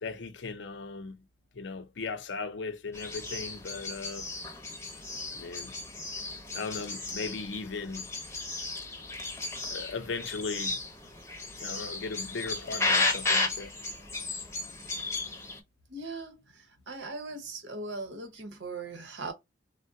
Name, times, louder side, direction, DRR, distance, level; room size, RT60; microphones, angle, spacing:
voice 1, 0.0-1.2 1.5-4.3 5.3-5.7 6.5-8.1 9.7-10.8 11.6-13.7, left 4 dB, 80° left, 0.6 m, -37 dB
sound 1, 2.9-15.6, left 3 dB, 15° left, 0.7 m, -34 dB
voice 2, 15.9-19.3, right 3 dB, 90° right, 0.9 m, -39 dB
3.6 x 2.1 x 2.5 m
head